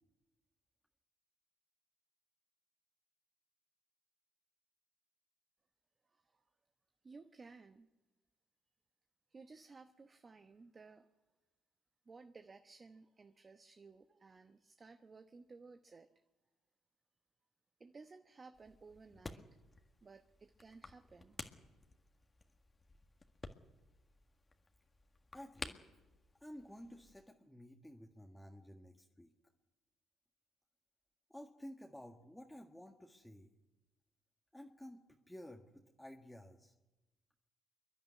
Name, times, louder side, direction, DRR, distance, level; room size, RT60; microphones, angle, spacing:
voice 1, 6.1-6.4 7.0-7.9 9.3-11.1 12.1-16.1 17.8-19.5 20.0-21.4, right 4 dB, 35° right, 8 dB, 1.0 m, -57 dB
sound 1, 18.5-27.3, left 3 dB, 30° left, 1.8 m, -53 dB
voice 2, 25.3-25.8 26.4-29.3 31.3-33.5 34.5-35.0 35.3-36.7, equal, 5° left, 2 dB, 1.8 m, -53 dB
27.5 x 11.0 x 9.5 m, 1.1 s
supercardioid pair, 60°, 0 cm